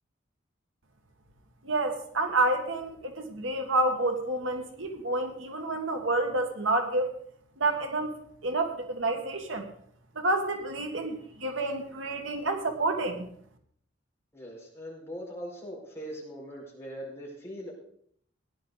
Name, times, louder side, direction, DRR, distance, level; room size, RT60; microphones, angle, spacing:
voice 1, 1.6-7.1 7.6-8.1 8.4-9.7 10.1-13.3, right 2 dB, 85° right, 5 dB, 1.7 m, -29 dB
voice 2, 14.3-17.7, equal, 15° left, -4 dB, 5.1 m, -41 dB
17.0 x 10.5 x 4.0 m, 0.64 s
head